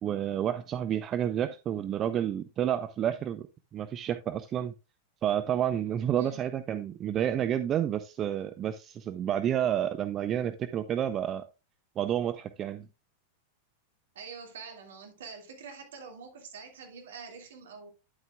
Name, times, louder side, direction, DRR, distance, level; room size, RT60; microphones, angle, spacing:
voice 1, 0.0-3.4 3.7-4.7 5.2-11.4 12.0-12.9, right 10 dB, 30° right, 0.5 m, -30 dB
voice 2, 14.1-17.9, right 5 dB, 60° right, 2.1 m, -45 dB
9.8 x 8.0 x 2.3 m
figure-of-eight pair, 90°, 0 cm